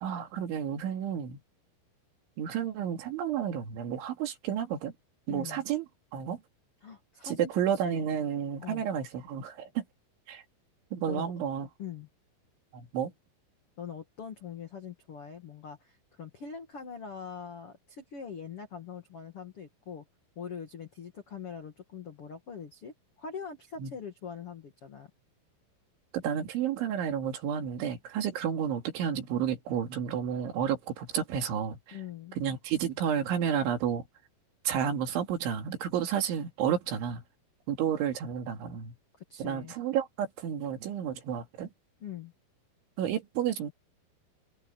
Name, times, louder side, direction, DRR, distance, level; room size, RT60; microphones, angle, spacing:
voice 1, 0.0-1.4 2.4-4.9 5.3-5.9 6.1-6.4 7.2-9.8 10.3-10.4 10.9-11.7 12.7-13.1 23.8-23.9 26.1-32.0 32.4-34.1 34.7-37.2 37.7-38.9 39.4-41.7 43.0-43.7, right 9 dB, 70° right, 4.6 m, -31 dB
voice 2, 5.3-5.6 6.8-8.1 8.6-8.8 11.1-11.4 11.8-12.1 13.8-20.0 20.3-25.1 31.9-32.4 39.2-39.7 42.0-42.3, left 7 dB, 60° left, 1.5 m, -43 dB
omnidirectional pair, 5.9 m